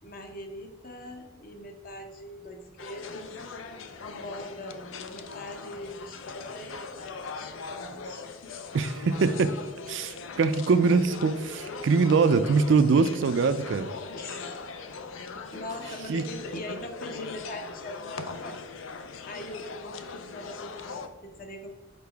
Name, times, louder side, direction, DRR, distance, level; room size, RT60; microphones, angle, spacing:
voice 1, 0.0-3.3 4.0-8.6 14.1-14.5 15.2-18.6 19.3-21.7, left 1 dB, 45° left, 4 dB, 0.9 m, -42 dB
sound 1, 2.8-21.1, left 4 dB, 75° left, 0.5 m, -40 dB
voice 2, 8.7-9.5 9.9-13.9 16.1-16.2, right 4 dB, 65° right, 11 dB, 0.4 m, -23 dB
6.7 x 4.7 x 3.4 m, 1.3 s
head